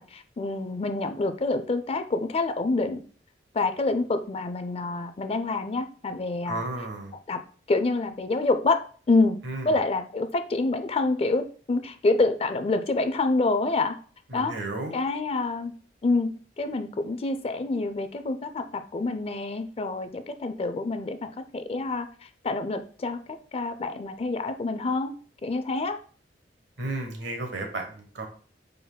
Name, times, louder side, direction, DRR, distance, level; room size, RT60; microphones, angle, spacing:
voice 1, 0.0-3.0 3.5-6.6 7.3-7.4 7.7-8.8 9.1-13.9 14.3-14.6 14.9-15.7 16.0-21.2 21.5-22.1 22.4-23.2 23.5-25.1 25.4-26.0, left 3 dB, 35° left, 10 dB, 0.4 m, -27 dB
voice 2, 6.5-7.1 9.4-9.8 14.3-14.9 26.8-28.3, right 2 dB, 85° right, 3 dB, 1.2 m, -33 dB
5.2 x 4.0 x 2.2 m, 0.41 s
head